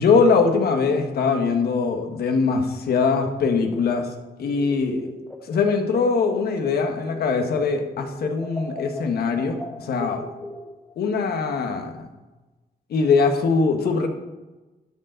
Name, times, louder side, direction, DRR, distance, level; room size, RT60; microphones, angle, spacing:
voice 1, 0.0-4.1 4.4-5.1 5.5-10.2 11.0-12.1 12.9-14.1, left 4 dB, 80° left, 5 dB, 1.4 m, -22 dB
sound 1, 4.4-7.7 7.9-11.0, left 1 dB, 10° left, 1.4 m, -38 dB
12.0 x 6.9 x 4.0 m, 1.1 s
wide cardioid pair, 145°, 16 cm